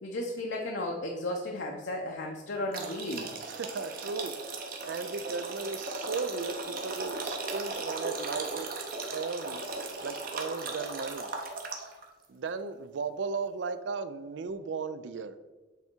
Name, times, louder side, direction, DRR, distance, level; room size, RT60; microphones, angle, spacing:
voice 1, 0.0-3.3, left 1 dB, 80° left, 0 dB, 0.7 m, -34 dB
sound 1, 2.7-12.0, right 3 dB, 50° right, 0.9 m, -37 dB
voice 2, 3.5-4.3 4.8-8.7 9.1-9.6 10.0-11.3 12.3-15.3, right 4 dB, 85° right, 12 dB, 0.4 m, -36 dB
8.0 x 3.5 x 4.5 m, 1.2 s
head